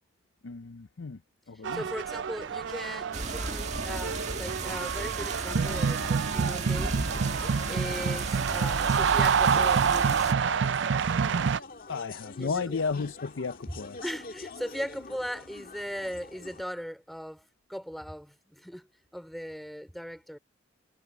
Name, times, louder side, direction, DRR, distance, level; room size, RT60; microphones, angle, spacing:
voice 1, 0.4-1.2 1.5-1.8 11.9-14.0, left 4 dB, 80° left, 0.6 m, -33 dB
sound 1, 1.6-11.6, right 6 dB, 65° right, 0.5 m, -27 dB
voice 2, 1.7-7.0 7.7-10.3 12.4-12.8 13.7-20.4, equal, ahead, 3.5 m, -38 dB
sound 2, 3.1-10.3, right 3 dB, 40° right, 1.8 m, -35 dB
sound 3, 5.5-16.6, left 3 dB, 50° left, 2.0 m, -45 dB
head